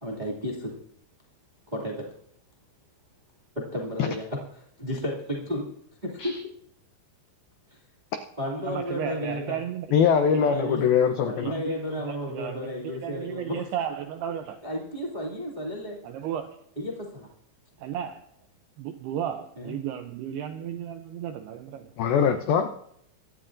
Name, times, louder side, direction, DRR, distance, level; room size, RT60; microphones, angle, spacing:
voice 1, 0.0-0.7 1.7-2.1 3.5-5.7 6.0-6.4 7.7-7.8 8.4-9.6 10.5-10.9 11.2-13.6 14.6-16.0 16.7-17.3 19.6-19.7, left 1 dB, 35° right, 0.6 m, -33 dB
voice 2, 8.7-10.6 11.4-11.8 12.1-14.6 16.0-16.6 17.8-18.2 18.8-22.0, right 9 dB, 85° right, 2.3 m, -34 dB
voice 3, 9.9-11.5 22.0-22.7, left 7 dB, 85° left, 2.1 m, -22 dB
24.5 x 12.5 x 2.6 m
omnidirectional pair, 5.4 m